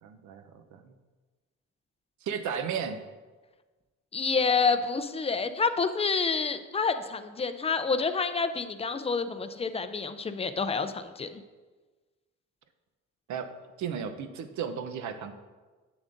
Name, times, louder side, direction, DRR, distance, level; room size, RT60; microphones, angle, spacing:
voice 1, 0.0-0.9 2.2-3.0 13.3-13.5 13.8-15.3, right 7 dB, 70° right, 8 dB, 0.7 m, -34 dB
voice 2, 4.1-11.4, left 5 dB, 20° left, 11 dB, 0.4 m, -28 dB
7.8 x 7.2 x 2.6 m, 1.3 s
cardioid pair, 90°, 30 cm